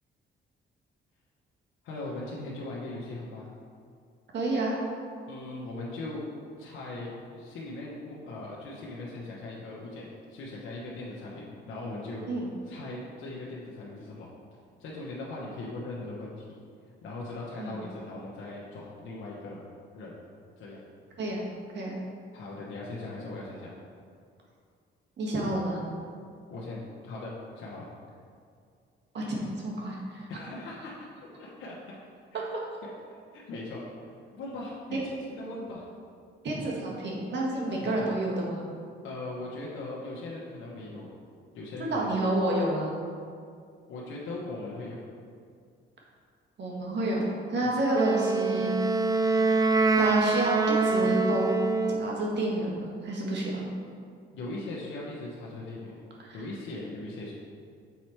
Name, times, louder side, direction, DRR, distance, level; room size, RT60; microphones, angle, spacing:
voice 1, 1.8-3.5 5.3-6.2 6.6-14.3 14.8-16.6 17.0-19.6 19.9-20.1 20.6-20.8 22.3-23.7 26.5-27.8 30.3-31.1 31.4-32.0 32.3-32.5 33.3-35.0 35.3-35.8 37.5-38.1 39.0-41.1 41.5-42.1 43.9-45.0 54.3-56.0 56.3-57.3, left 2 dB, 80° left, -5 dB, 1.1 m, -39 dB
voice 2, 4.3-4.8 12.3-12.5 17.6-17.8 21.2-21.4 21.7-22.0 25.2-25.8 29.1-30.3 36.4-38.6 41.8-42.9 46.6-47.2 47.5-48.7 50.0-51.6 52.0-53.6 56.2-56.4, right 1 dB, 60° right, -3 dB, 1.7 m, -29 dB
Wind instrument woodwind instrument, 47.9-52.2, right 3 dB, 20° right, 0.4 m, -25 dB
7.0 x 4.3 x 4.6 m, 2.2 s
cardioid pair, 90°, 20 cm